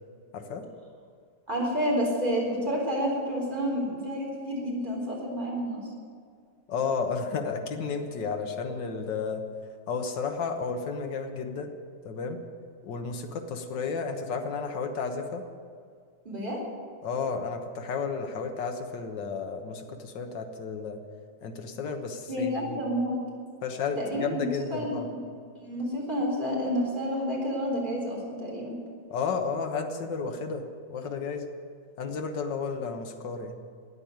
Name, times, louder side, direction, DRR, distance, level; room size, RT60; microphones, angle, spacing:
voice 1, 0.3-0.7 6.7-9.4 9.9-11.7 12.0-12.4 12.8-15.4 17.0-21.0 21.4-22.8 23.6-25.1 29.1-31.5 32.0-33.6, left 5 dB, 70° left, 4 dB, 1.8 m, -32 dB
voice 2, 1.5-5.8 16.2-16.6 22.3-23.2 24.0-25.1 25.6-28.8, equal, 25° right, -3 dB, 4.1 m, -29 dB
14.0 x 9.1 x 9.3 m, 2.2 s
omnidirectional pair, 2.0 m